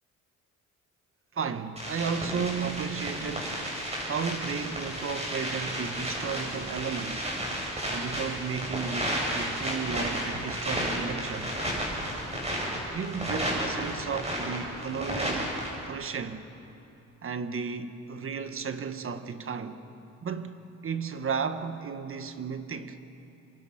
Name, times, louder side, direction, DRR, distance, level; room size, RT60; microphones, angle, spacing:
voice 1, 1.3-3.7 4.0-7.3 7.9-11.6 12.7-15.5 15.9-16.5 17.2-19.8 20.2-20.6 20.8-23.0, right 6 dB, 45° right, 1.5 m, -34 dB
sound 1, 1.8-15.7, equal, 20° right, 8.0 m, -32 dB
27.0 x 23.0 x 5.9 m
cardioid pair, 90°, 30 cm